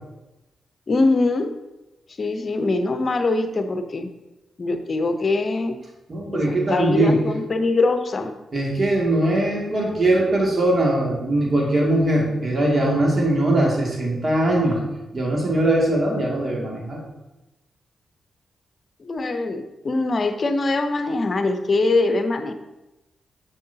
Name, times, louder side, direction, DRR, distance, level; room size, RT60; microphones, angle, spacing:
voice 1, 0.9-1.5 2.2-4.1 4.6-5.8 6.3-8.3 19.0-22.5, left 3 dB, 50° left, 8 dB, 0.6 m, -22 dB
voice 2, 6.1-7.2 8.5-14.8 15.1-17.0, right 1 dB, 45° right, -2 dB, 2.2 m, -21 dB
6.4 x 6.3 x 2.8 m, 0.99 s
hypercardioid pair, 40°, 0 cm